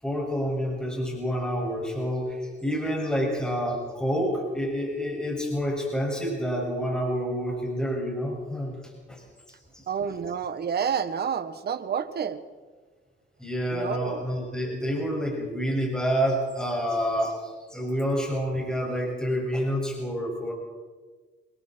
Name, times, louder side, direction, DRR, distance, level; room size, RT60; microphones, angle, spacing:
voice 1, 0.0-8.8 9.1-9.2 9.7-9.8 13.4-20.5, equal, 5° left, -2 dB, 7.2 m, -28 dB
voice 2, 9.9-12.4 13.7-14.3, right 7 dB, 55° right, 11 dB, 1.6 m, -29 dB
28.5 x 21.5 x 4.7 m, 1.4 s
cardioid pair, 90°, 20 cm